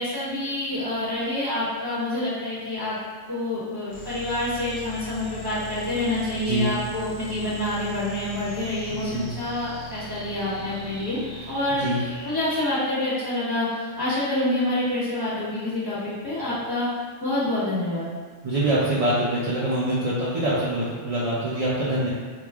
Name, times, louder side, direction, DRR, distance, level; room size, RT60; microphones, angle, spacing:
voice 1, 0.0-3.0 3.3-11.2 11.5-16.9 17.2-18.1, left 1 dB, 20° right, -11 dB, 0.9 m, -27 dB
sound 1, 3.9-12.6, equal, 20° left, 0.7 m, -40 dB
voice 2, 8.9-9.3 11.8-12.0 18.4-22.1, right 1 dB, 55° right, -9 dB, 0.4 m, -24 dB
3.3 x 2.4 x 3.5 m, 1.6 s
omnidirectional pair, 1.3 m